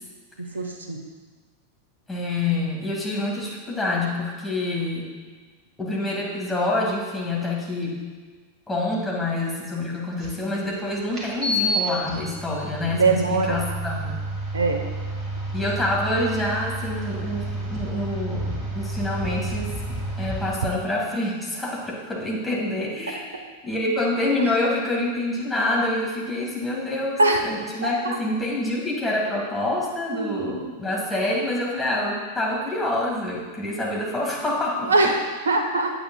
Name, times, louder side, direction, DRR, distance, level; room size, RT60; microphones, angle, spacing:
voice 1, 0.5-1.0 12.9-13.6 14.5-14.8 24.4-24.5 27.2-27.4 27.8-27.9 30.1-30.7 34.8-35.9, right 3 dB, 70° right, 4 dB, 0.8 m, -22 dB
voice 2, 2.1-5.1 5.8-8.0 8.7-14.2 15.5-19.8 20.2-23.2 23.6-35.1, left 2 dB, 10° left, -4 dB, 2.0 m, -27 dB
sound 1, 10.2-10.3 11.1-20.5, right 1 dB, 25° right, 2.3 m, -30 dB
9.0 x 8.3 x 2.3 m, 1.4 s
figure-of-eight pair, 90°, 0 cm